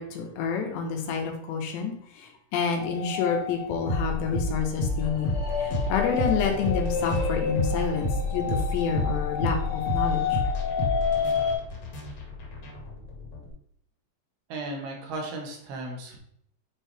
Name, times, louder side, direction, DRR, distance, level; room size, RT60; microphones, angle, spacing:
voice 1, 0.0-5.3 5.6-10.4, left 6 dB, 90° left, 3 dB, 3.3 m, -29 dB
sound 1, 2.8-11.5, left 6 dB, 70° left, 3.5 m, -30 dB
sound 2, 3.9-13.5, left 2 dB, 45° left, 2.4 m, -30 dB
voice 2, 14.5-16.2, right 2 dB, 70° right, 1 dB, 3.3 m, -35 dB
9.5 x 4.7 x 3.4 m, 0.68 s
omnidirectional pair, 4.8 m